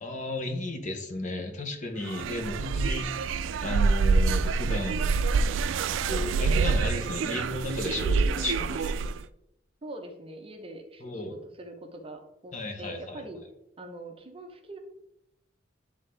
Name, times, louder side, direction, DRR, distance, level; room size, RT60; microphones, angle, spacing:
voice 1, 0.0-3.1 3.6-5.2 6.1-9.1 11.0-11.3 12.5-13.2, left 2 dB, 40° left, 5 dB, 0.9 m, -34 dB
sound 1, 2.0-9.2, right 4 dB, 80° right, 0.3 m, -26 dB
voice 2, 9.8-13.4 13.8-14.8, right 1 dB, 30° right, 4 dB, 0.8 m, -43 dB
9.3 x 3.6 x 3.3 m, 0.82 s
head